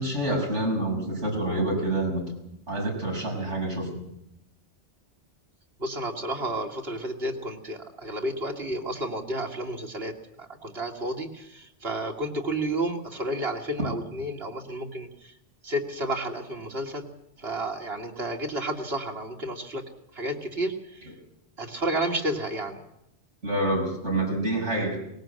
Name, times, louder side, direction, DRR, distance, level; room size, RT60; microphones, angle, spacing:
voice 1, 0.0-2.3 2.7-4.0 13.8-13.9 23.4-25.0, right 1 dB, 85° right, 1 dB, 6.8 m, -27 dB
voice 2, 5.8-10.1 10.4-15.3 15.6-17.1 17.4-19.8 20.1-21.1 21.6-22.8, right 1 dB, 60° right, 3 dB, 2.8 m, -31 dB
23.0 x 20.5 x 7.7 m, 0.82 s
omnidirectional pair, 1.2 m